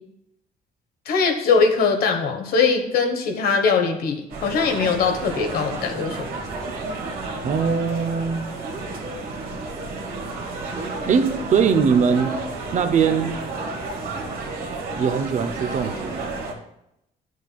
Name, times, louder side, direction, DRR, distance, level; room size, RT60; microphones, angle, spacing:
voice 1, 1.0-6.4, left 5 dB, 75° left, 4 dB, 1.2 m, -21 dB
sound 1, 4.3-16.5, right 3 dB, 65° right, 1.5 m, -31 dB
voice 2, 7.4-8.4 11.1-12.3 12.7-13.4 15.0-16.3, right 6 dB, 50° right, 9 dB, 0.7 m, -21 dB
10.5 x 6.3 x 2.3 m, 0.82 s
cardioid pair, 105°, 16 cm